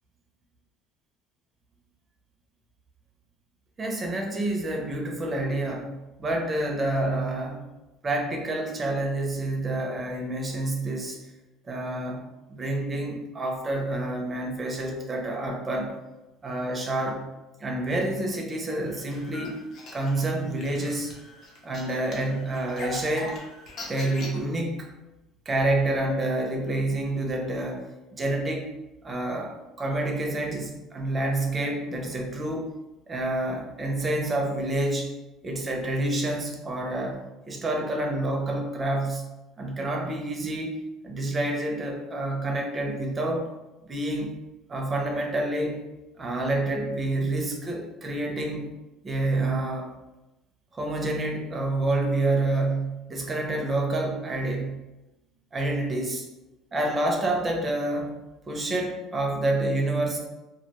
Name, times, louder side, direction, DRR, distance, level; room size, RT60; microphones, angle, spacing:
voice 1, 3.8-7.6 8.0-11.2 11.7-12.2 12.5-15.9 16.4-17.2 17.6-19.6 19.9-21.1 21.6-23.4 23.9-24.9 25.5-27.8 28.1-28.7 29.0-32.7 33.1-35.1 35.4-37.2 37.5-39.2 39.6-43.5 43.9-44.3 44.7-45.8 46.2-48.7 49.0-49.9 50.7-54.8 55.5-56.3 56.7-58.1 58.5-60.2, right 2 dB, 20° right, 1 dB, 0.4 m, -28 dB
sound 1, 18.9-24.4, left 2 dB, 45° left, 0.5 m, -41 dB
2.2 x 2.1 x 2.8 m, 1.0 s
cardioid pair, 150°, 0 cm